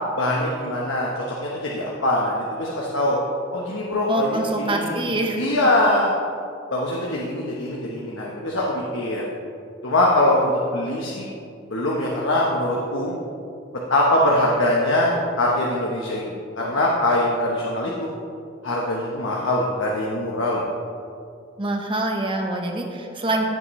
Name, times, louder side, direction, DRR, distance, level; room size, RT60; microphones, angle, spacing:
voice 1, 0.2-3.2 3.5-4.4 4.6-6.1 6.7-9.3 9.8-11.3 11.7-13.1 13.9-18.1 18.6-20.6, left 1 dB, 85° left, -3 dB, 1.1 m, -23 dB
voice 2, 4.1-5.4 21.6-23.4, right 1 dB, 25° right, 2 dB, 1.1 m, -25 dB
15.5 x 6.3 x 3.2 m, 2.4 s
head